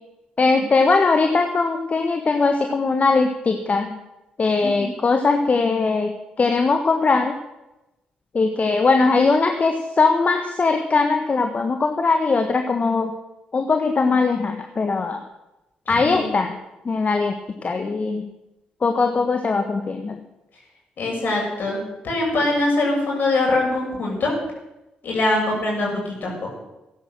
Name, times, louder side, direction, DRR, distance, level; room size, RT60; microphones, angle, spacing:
voice 1, 0.4-4.0 4.4-6.1 6.4-7.3 8.3-13.1 13.5-15.2 15.9-16.6 16.8-17.3 17.6-18.2 18.8-20.2, left 4 dB, 45° left, 5 dB, 1.5 m, -20 dB
voice 2, 4.6-4.9 15.9-16.4 21.0-24.3 25.0-26.3, left 2 dB, 65° left, -1 dB, 7.1 m, -23 dB
15.0 x 11.0 x 6.7 m, 0.96 s
hypercardioid pair, 45°, 3 cm